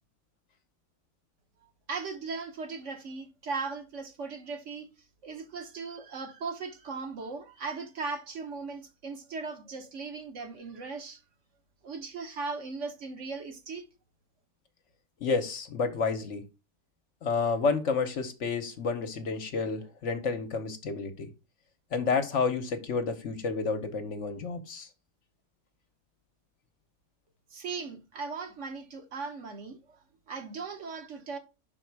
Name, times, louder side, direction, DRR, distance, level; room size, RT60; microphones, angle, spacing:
voice 1, 1.9-4.9 5.2-11.2 11.8-13.8 27.5-30.0 30.3-31.4, right 4 dB, 60° right, 1.2 m, -38 dB
voice 2, 15.2-16.4 17.2-21.3 21.9-24.9, left 4 dB, 60° left, 1.1 m, -30 dB
5.9 x 4.2 x 4.6 m
omnidirectional pair, 1.5 m